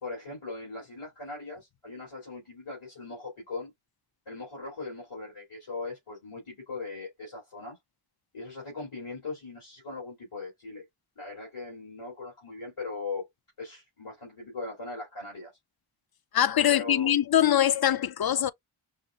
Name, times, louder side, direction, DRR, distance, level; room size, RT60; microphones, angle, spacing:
voice 1, 0.0-3.7 4.3-7.8 8.3-10.9 11.2-13.3 13.6-15.5 16.7-17.1, left 3 dB, 80° left, 2.7 m, -39 dB
voice 2, 16.3-18.5, left 10 dB, 50° left, 0.4 m, -23 dB
5.5 x 2.4 x 2.3 m
wide cardioid pair, 45°, 49 cm